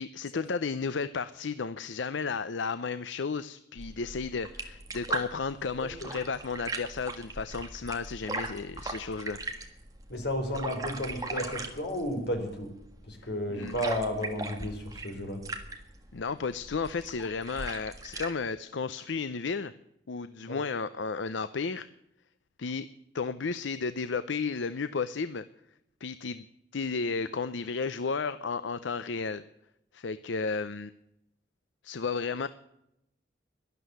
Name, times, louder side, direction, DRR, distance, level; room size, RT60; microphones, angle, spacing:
voice 1, 0.0-9.4 13.5-13.7 16.1-19.7 20.1-21.9 22.6-22.9 23.1-25.5 26.0-26.4 26.7-29.4 29.9-30.9 31.8-32.5, left 4 dB, 80° left, 14 dB, 0.6 m, -33 dB
sound 1, 3.8-18.3, right 2 dB, 20° right, 1.6 m, -39 dB
voice 2, 5.8-6.1 10.1-12.7 13.1-15.4 20.5-20.6, equal, 65° left, 4 dB, 3.8 m, -33 dB
12.5 x 11.5 x 9.2 m, 0.81 s
head